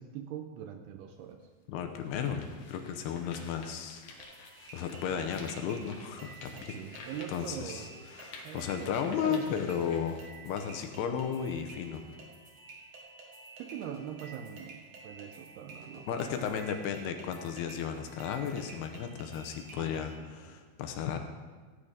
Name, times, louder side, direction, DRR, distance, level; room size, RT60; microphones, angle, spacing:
voice 1, 0.0-1.4 6.5-7.9 8.4-9.6 13.6-16.5 19.7-20.6, right 9 dB, 85° right, 6 dB, 2.4 m, -42 dB
sound 1, 1.1-1.2 1.8-10.3, left 4 dB, 65° left, 2.4 m, -52 dB
voice 2, 1.7-4.0 4.7-6.8 7.3-12.0 16.1-21.2, left 8 dB, 80° left, 6 dB, 2.6 m, -34 dB
sound 2, 4.2-20.2, right 3 dB, 55° right, 1.9 m, -51 dB
15.0 x 8.8 x 5.0 m, 1.4 s
omnidirectional pair, 5.2 m